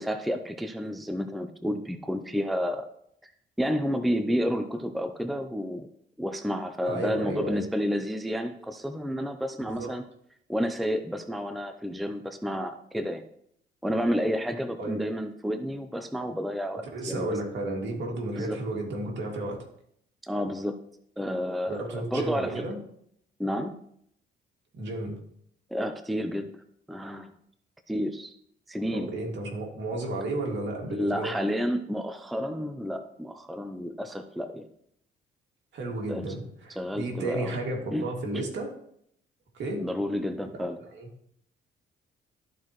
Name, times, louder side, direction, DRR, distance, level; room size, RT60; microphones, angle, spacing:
voice 1, 0.0-2.9 3.2-3.3 3.6-5.9 6.2-10.0 10.5-13.2 13.8-17.3 18.3-18.6 20.2-20.8 21.2-22.6 23.4-23.8 25.7-26.5 26.9-27.3 27.9-28.3 28.7-29.1 30.9-34.6 36.1-36.4 36.8-37.6 37.9-38.0 38.3-38.5 39.8-40.8, equal, ahead, 8 dB, 0.5 m, -30 dB
voice 2, 6.8-7.6 9.6-9.9 14.8-15.0 16.9-19.6 21.7-22.8 24.7-25.2 28.9-31.3 35.7-38.7 39.5-39.8 40.5-40.7 40.9-41.1, right 2 dB, 65° right, 0 dB, 2.2 m, -33 dB
13.0 x 4.6 x 3.1 m, 0.70 s
cardioid pair, 90°, 20 cm